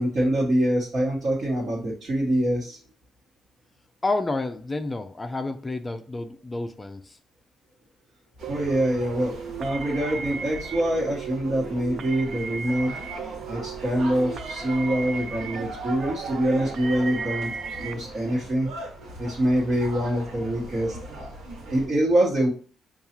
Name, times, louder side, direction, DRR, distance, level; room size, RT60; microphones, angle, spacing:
voice 1, 0.0-2.8 8.5-9.3 9.6-12.9 13.5-17.5 17.8-18.7 19.2-21.3 21.7-22.5, right 1 dB, 50° right, 1.2 m, -25 dB
voice 2, 4.0-7.2, left 2 dB, 20° left, 0.4 m, -30 dB
sound 1, 8.4-17.9, right 6 dB, 65° right, 0.3 m, -36 dB
sound 2, 8.4-21.9, right 1 dB, 80° right, 1.2 m, -40 dB
5.3 x 2.3 x 2.9 m
cardioid pair, 90°, 0 cm